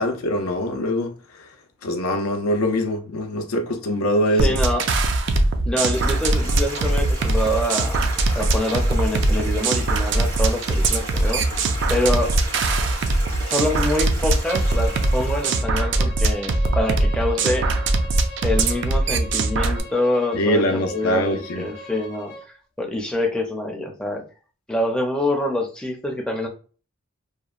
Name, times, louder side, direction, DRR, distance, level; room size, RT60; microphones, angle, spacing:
voice 1, 0.0-1.5 1.8-4.6 20.3-21.7, left 1 dB, 85° left, 0.5 m, -23 dB
voice 2, 4.4-4.9 5.7-8.1 8.4-11.5 11.9-12.4 13.4-17.7 18.4-22.3 22.8-24.2 24.7-26.5, left 1 dB, 5° left, 0.4 m, -25 dB
sound 1, 4.4-19.8, right 2 dB, 55° right, 0.4 m, -21 dB
Stream, 5.9-15.6, right 2 dB, 80° right, 1.3 m, -35 dB
Bowed string instrument, 14.4-22.5, left 1 dB, 50° left, 0.7 m, -39 dB
2.8 x 2.0 x 2.4 m
head